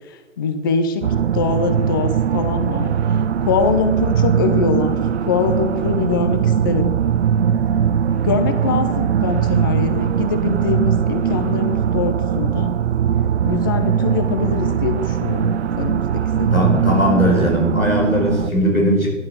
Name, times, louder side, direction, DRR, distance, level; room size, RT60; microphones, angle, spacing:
voice 1, 0.4-1.0 1.3-2.9 3.4-7.0 8.2-12.7 13.4-16.1 16.4-16.7, left 5 dB, 15° left, 8 dB, 0.5 m, -23 dB
sound 1, 1.0-18.5, right 8 dB, 55° right, 0.5 m, -20 dB
voice 2, 16.5-19.1, equal, 90° left, 0 dB, 4.9 m, -18 dB
11.0 x 10.5 x 6.4 m, 1.3 s
figure-of-eight pair, 130°, 40 cm